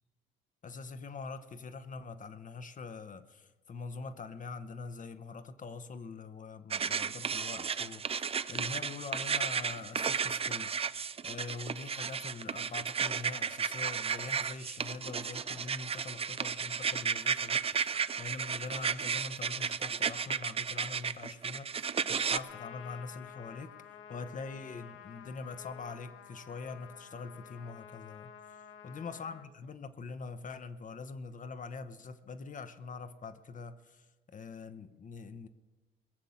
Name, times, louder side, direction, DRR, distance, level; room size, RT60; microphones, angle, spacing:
voice 1, 0.6-23.8 24.1-35.5, left 4 dB, 40° left, 0.8 m, -44 dB
sound 1, 6.7-22.4, right 6 dB, 30° right, 0.5 m, -33 dB
Trumpet, 22.2-29.5, left 9 dB, 80° left, 1.0 m, -51 dB
20.5 x 7.1 x 7.0 m
cardioid pair, 90°, 20 cm